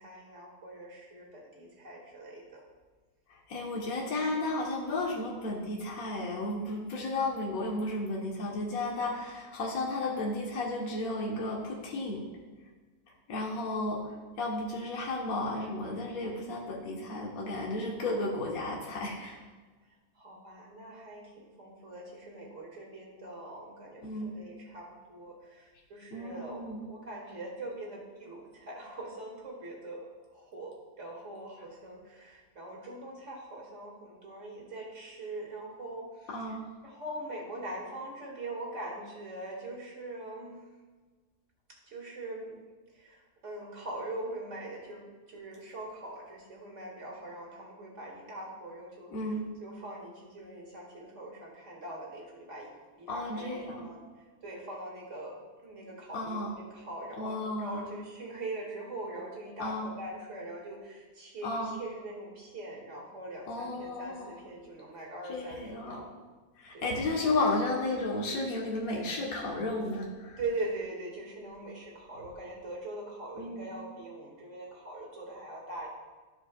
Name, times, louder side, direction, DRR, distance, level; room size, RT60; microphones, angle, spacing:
voice 1, 0.0-2.6 20.2-36.6 36.8-40.5 41.9-42.6 42.9-54.0 54.4-55.3 55.6-66.1 66.7-67.0 70.4-75.9, right 2 dB, 55° right, -2 dB, 2.1 m, -42 dB
voice 2, 3.3-12.2 13.3-19.4 24.0-24.3 26.1-26.9 36.3-36.6 49.1-49.5 53.1-53.9 56.1-56.5 57.2-57.9 59.6-59.9 61.4-61.8 63.5-64.4 65.3-66.0 66.6-70.4 73.4-73.7, left 2 dB, 70° left, -3 dB, 1.5 m, -33 dB
14.0 x 4.9 x 2.2 m, 1.3 s
omnidirectional pair, 1.6 m